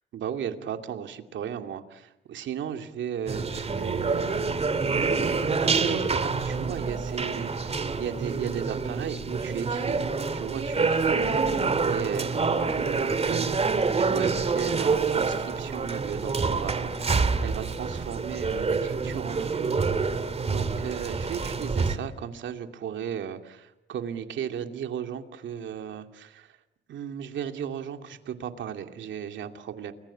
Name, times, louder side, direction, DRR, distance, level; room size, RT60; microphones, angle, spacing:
voice 1, 0.1-4.6 5.3-10.0 10.3-11.5 11.9-12.8 13.2-13.6 14.0-19.7 20.5-26.5 26.9-29.9, right 8 dB, 70° right, 6 dB, 2.5 m, -35 dB
sound 1, 3.3-22.0, right 4 dB, 30° right, 2.5 m, -27 dB
30.0 x 22.0 x 8.6 m, 0.91 s
cardioid pair, 90°, 20 cm